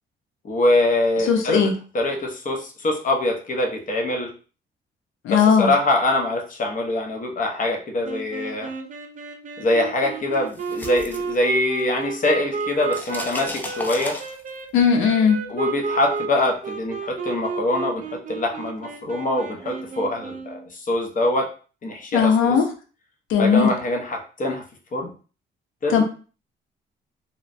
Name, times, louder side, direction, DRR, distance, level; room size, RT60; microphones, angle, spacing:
voice 1, 0.4-4.3 5.3-8.7 9.6-14.2 15.5-21.5 21.8-22.6 23.4-24.6 24.9-25.1 25.8-26.0, left 1 dB, 40° left, 2 dB, 0.8 m, -24 dB
voice 2, 1.2-1.8 5.2-5.7 14.7-15.4 22.1-22.7 23.3-23.7 25.9-26.0, left 6 dB, 85° left, 5 dB, 0.6 m, -18 dB
sound 1, 8.0-20.7, right 5 dB, 40° right, 0.5 m, -32 dB
sound 2, 10.3-12.0 12.3-14.7, left 1 dB, 10° left, 0.5 m, -35 dB
3.0 x 2.1 x 2.6 m, 0.37 s
cardioid pair, 90°, 20 cm